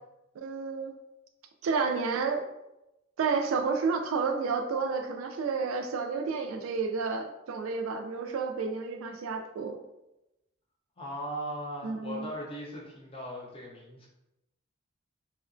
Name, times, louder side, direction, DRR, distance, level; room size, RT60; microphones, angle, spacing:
voice 1, 0.4-1.0 1.6-2.4 3.2-9.8 11.8-12.3, right 5 dB, 75° right, 5 dB, 0.3 m, -30 dB
voice 2, 11.0-14.1, equal, 25° left, -2 dB, 0.6 m, -38 dB
2.7 x 2.1 x 2.5 m, 0.93 s
head